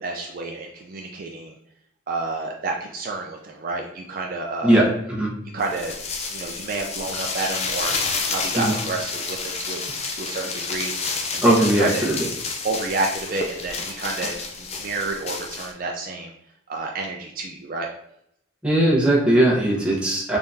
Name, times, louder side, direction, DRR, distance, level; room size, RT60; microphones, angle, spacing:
voice 1, 0.0-1.5 2.1-4.9 5.5-5.9 6.3-7.9 8.3-9.8 10.1-12.1 12.6-16.3 16.7-17.9, right 3 dB, 45° right, 1 dB, 0.4 m, -30 dB
sound 1, 5.6-15.7, left 4 dB, 30° left, 0.4 m, -30 dB
voice 2, 11.4-12.3 18.6-20.4, right 1 dB, 5° right, -5 dB, 0.8 m, -19 dB
3.6 x 3.4 x 2.7 m, 0.75 s
head